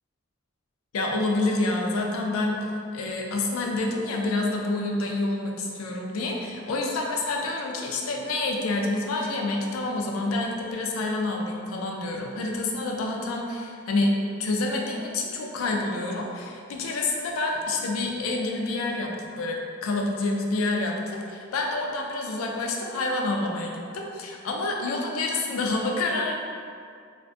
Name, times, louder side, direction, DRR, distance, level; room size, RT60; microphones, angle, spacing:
voice 1, 0.9-14.1 14.4-26.4, left 2 dB, 85° left, 0 dB, 0.4 m, -28 dB
2.5 x 2.2 x 2.5 m, 2.3 s
head